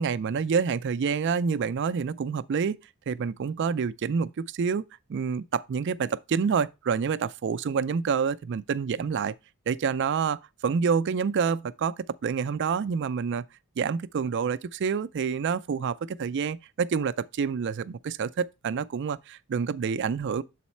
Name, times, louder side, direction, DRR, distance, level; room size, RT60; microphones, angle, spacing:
voice 1, 0.0-2.8 3.1-4.8 5.1-9.3 9.7-13.4 13.8-20.4, right 6 dB, 55° right, 0.4 m, -28 dB
7.0 x 4.1 x 4.2 m
head